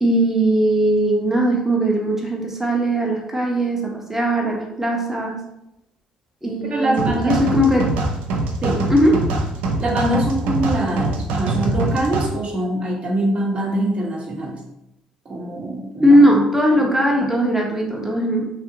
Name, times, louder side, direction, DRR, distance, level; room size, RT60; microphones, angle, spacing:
voice 1, 0.0-5.4 6.4-7.9 8.9-9.3 16.0-18.5, right 1 dB, 10° right, -1 dB, 0.8 m, -18 dB
voice 2, 6.6-7.4 8.6-8.9 9.8-14.6 15.2-16.2, right 1 dB, 40° right, -2 dB, 0.9 m, -23 dB
sound 1, 7.0-12.3, right 2 dB, 70° right, 0.4 m, -23 dB
2.7 x 2.5 x 2.6 m, 0.86 s
hypercardioid pair, 55°, 3 cm